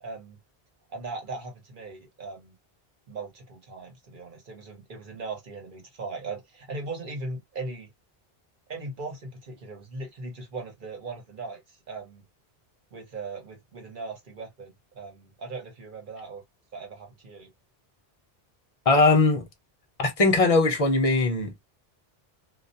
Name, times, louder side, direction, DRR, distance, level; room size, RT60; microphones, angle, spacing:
voice 1, 0.0-0.4 0.9-2.6 3.1-7.9 8.7-12.2 12.9-16.4 16.7-17.5, right 3 dB, 55° right, 1.1 m, -39 dB
voice 2, 18.9-19.5 20.0-21.6, left 3 dB, 40° left, 0.6 m, -20 dB
2.3 x 2.1 x 2.5 m
omnidirectional pair, 1.0 m